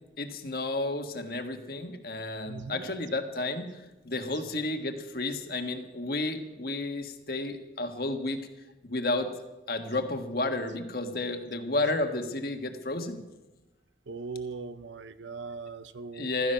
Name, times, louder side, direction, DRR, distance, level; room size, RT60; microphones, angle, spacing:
voice 1, 0.2-3.8 4.0-8.4 8.8-9.3 9.7-13.2 16.1-16.5, left 2 dB, 55° left, 6 dB, 1.5 m, -31 dB
voice 2, 2.4-3.0 14.1-16.3, right 4 dB, 85° right, 15 dB, 0.6 m, -40 dB
15.5 x 13.5 x 5.7 m, 1.1 s
head